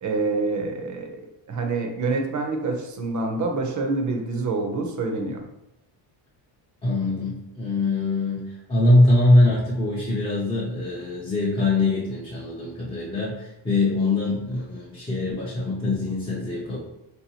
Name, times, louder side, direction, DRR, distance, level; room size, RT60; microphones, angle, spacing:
voice 1, 0.0-5.4, right 3 dB, 40° right, 3 dB, 0.5 m, -27 dB
voice 2, 6.8-16.8, left 2 dB, 15° left, -7 dB, 0.4 m, -22 dB
3.7 x 2.7 x 2.7 m, 0.88 s
cardioid pair, 145°, 49 cm